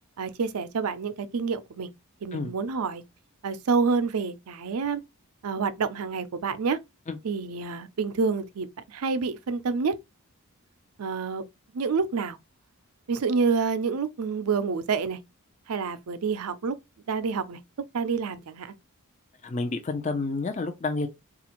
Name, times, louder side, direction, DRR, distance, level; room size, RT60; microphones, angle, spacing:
voice 1, 0.2-1.9 2.2-3.0 3.4-5.0 5.4-6.8 7.2-10.0 11.0-11.4 11.7-12.4 13.1-15.2 15.7-16.7 17.1-17.6 17.9-18.7, right 5 dB, 85° right, 0.5 m, -28 dB
voice 2, 19.4-21.1, left 3 dB, 30° left, 0.5 m, -29 dB
4.1 x 2.4 x 2.9 m
head